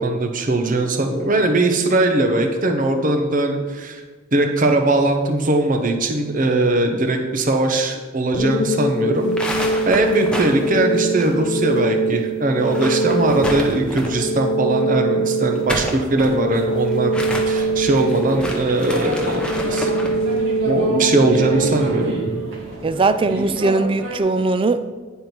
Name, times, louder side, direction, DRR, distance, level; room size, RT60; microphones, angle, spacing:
voice 1, 0.0-4.0 4.3-17.2 17.5-19.9 20.7-22.2, right 2 dB, 40° right, 5 dB, 0.8 m, -20 dB
sound 1, 8.3-23.3, right 2 dB, 45° left, 0.7 m, -23 dB
sound 2, 9.2-11.8 12.0-12.1 12.5-14.3 15.4-20.2, equal, 5° left, 0.9 m, -30 dB
sound 3, 17.5-24.2, equal, 70° right, 1.6 m, -29 dB
voice 2, 22.8-24.9, right 3 dB, 25° right, 11 dB, 0.3 m, -19 dB
9.4 x 4.5 x 5.3 m, 1.4 s
head